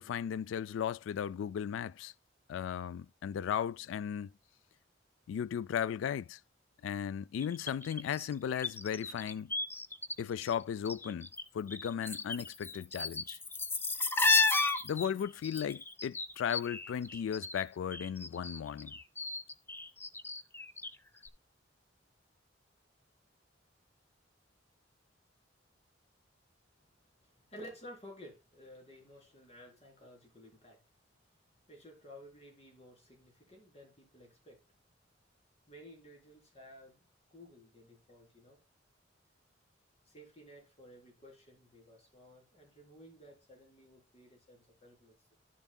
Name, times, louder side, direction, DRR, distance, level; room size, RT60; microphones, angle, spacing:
voice 1, 0.0-2.1 2.5-4.3 5.3-6.4 6.8-9.5 10.2-11.3 11.5-13.4 14.8-18.9, left 8 dB, 80° left, 0.3 m, -36 dB
sound 1, 7.4-10.1 10.4-11.4 11.7-17.6 17.9-20.9 21.2-21.3, left 3 dB, 10° left, 0.5 m, -33 dB
voice 2, 27.2-30.8 31.2-31.3 31.7-34.6 35.7-38.6 40.1-45.3, equal, 35° left, 3.9 m, -54 dB
11.0 x 7.0 x 2.3 m
head